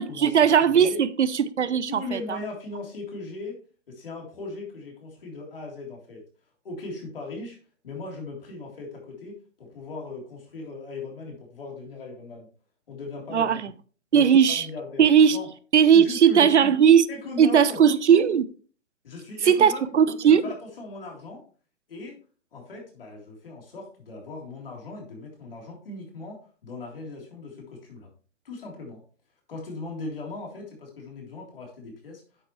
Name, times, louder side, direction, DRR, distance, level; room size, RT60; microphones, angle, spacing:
voice 1, 0.0-2.4 13.3-13.7 14.1-14.7 15.0-15.4 15.7-17.1 17.4-18.5 19.5-20.4, right 8 dB, 65° right, 0.7 m, -18 dB
voice 2, 0.7-1.0 1.9-3.6 3.9-6.2 6.6-7.6 7.8-12.5 12.9-13.5 14.1-15.0 15.3-15.5 15.9-16.7 17.1-17.8 19.0-19.9 20.2-21.4 21.9-22.2 22.5-26.4 26.6-28.1 28.4-29.0 29.5-32.2, left 3 dB, 50° left, 3.5 m, -38 dB
9.2 x 7.6 x 3.1 m
hypercardioid pair, 180°, 37 cm